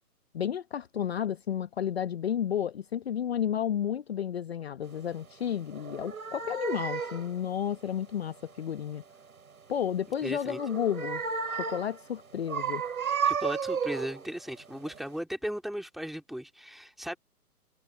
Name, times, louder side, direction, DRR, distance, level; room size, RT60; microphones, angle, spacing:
voice 1, 0.3-9.0 9.7-11.2 11.5-12.8, left 9 dB, 40° left, 1.0 m, -32 dB
sound 1, 5.7-7.4 10.5-12.0 12.5-14.3 14.8-15.0, right 6 dB, 60° right, 6.3 m, -32 dB
voice 2, 10.2-10.6 13.2-17.2, equal, ahead, 3.4 m, -36 dB
figure-of-eight pair, 135°, 47 cm